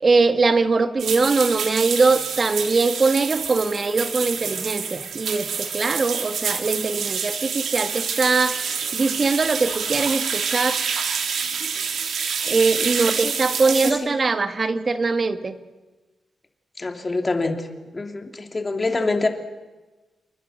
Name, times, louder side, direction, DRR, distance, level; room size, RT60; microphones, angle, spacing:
voice 1, 0.0-8.6 8.9-10.8 12.5-15.6, right 3 dB, 35° right, 9 dB, 1.7 m, -21 dB
sound 1, 1.0-13.9, right 6 dB, 75° right, 3.3 m, -27 dB
voice 2, 13.0-13.4 13.6-14.1 16.8-17.7 17.9-19.3, left 3 dB, 25° left, 5 dB, 2.9 m, -26 dB
29.5 x 23.5 x 6.5 m, 1.2 s
wide cardioid pair, 140°, 0 cm